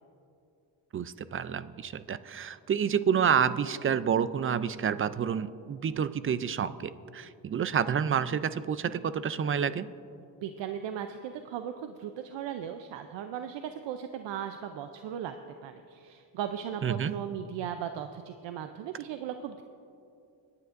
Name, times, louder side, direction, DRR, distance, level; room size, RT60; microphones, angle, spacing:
voice 1, 0.9-9.9 16.8-17.1, right 7 dB, 30° right, 15 dB, 0.4 m, -29 dB
voice 2, 10.4-15.3 15.6-19.6, right 9 dB, 75° right, 8 dB, 0.6 m, -37 dB
24.0 x 9.6 x 2.5 m, 2.6 s
cardioid pair, 85°, 45 cm